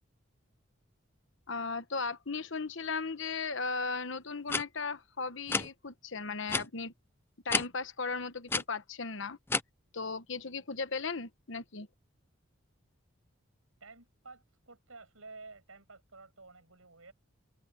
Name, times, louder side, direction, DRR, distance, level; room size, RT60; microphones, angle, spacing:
voice 1, 1.5-6.9 7.4-9.4 9.9-11.9, left 4 dB, 60° left, 1.1 m, -36 dB
sound 1, 4.5-4.6 5.5-5.7 6.5-6.7 7.5-7.6 8.5-8.6 9.5-9.6, left 3 dB, 10° left, 0.4 m, -29 dB
voice 2, 13.8-17.1, right 3 dB, 80° right, 6.9 m, -52 dB
open air
head